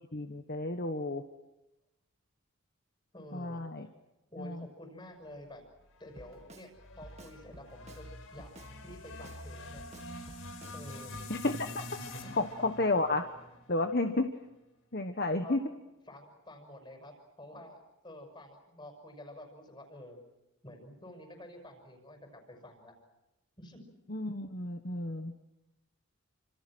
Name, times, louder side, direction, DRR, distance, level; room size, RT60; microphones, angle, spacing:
voice 1, 0.1-1.2 3.3-3.9 4.4-4.7 11.3-13.3 13.7-14.3 14.9-15.6 24.1-25.3, left 2 dB, 45° left, 6 dB, 1.3 m, -32 dB
voice 2, 3.1-3.6 4.3-5.6 6.0-8.5 8.8-9.8 10.7-11.1 12.2-12.4 15.2-15.6 16.1-20.2 20.6-23.0 23.6-23.9, left 1 dB, 20° left, 5 dB, 6.2 m, -49 dB
sound 1, 5.9-14.3, left 2 dB, 75° left, 4.9 m, -46 dB
Drum kit, 6.2-6.7 7.0-8.1 8.4-9.4 9.8-10.8 11.1-11.3, right 1 dB, 30° right, 2.1 m, -52 dB
29.5 x 27.0 x 6.2 m, 0.96 s
head